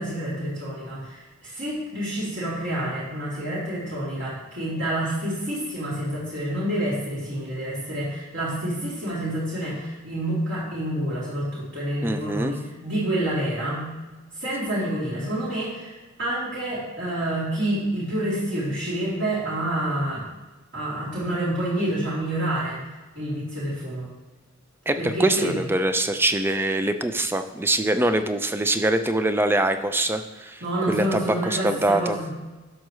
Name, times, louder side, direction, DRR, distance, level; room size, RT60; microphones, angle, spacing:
voice 1, 0.0-13.9 14.3-20.3 20.7-22.8 23.1-24.0 25.0-25.6 30.6-32.3, right 1 dB, 60° right, -9 dB, 3.0 m, -28 dB
voice 2, 12.0-12.5 24.9-32.2, right 1 dB, 10° right, 8 dB, 0.4 m, -24 dB
12.0 x 6.4 x 3.1 m, 1.2 s
head